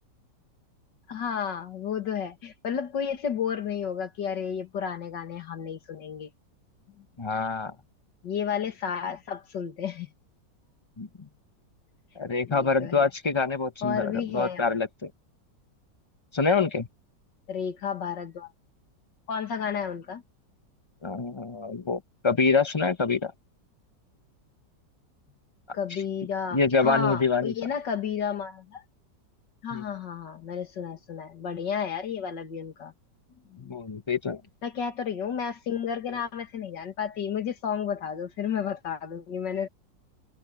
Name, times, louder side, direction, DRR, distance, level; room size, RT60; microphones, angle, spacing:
voice 1, 1.1-6.3 7.0-7.1 8.2-10.1 12.5-13.1 13.8-14.8 17.5-18.5 19.3-20.2 25.7-28.8 29.6-32.9 33.5-33.8 34.6-39.7, left 7 dB, 80° left, 2.5 m, -32 dB
voice 2, 7.2-7.7 11.0-11.1 12.2-15.1 16.3-16.9 21.0-23.3 26.5-27.5 29.7-29.8 33.6-34.4, left 4 dB, 25° left, 0.6 m, -26 dB
omnidirectional pair, 1.9 m